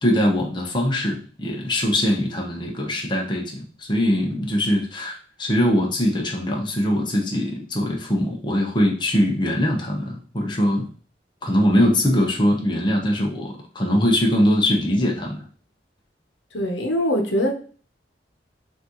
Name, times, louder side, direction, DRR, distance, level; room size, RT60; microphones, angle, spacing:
voice 1, 0.0-10.9 11.4-15.4, equal, 25° left, 0 dB, 0.9 m, -22 dB
voice 2, 16.5-17.5, equal, 80° left, 3 dB, 1.0 m, -22 dB
5.9 x 2.7 x 3.0 m, 0.41 s
head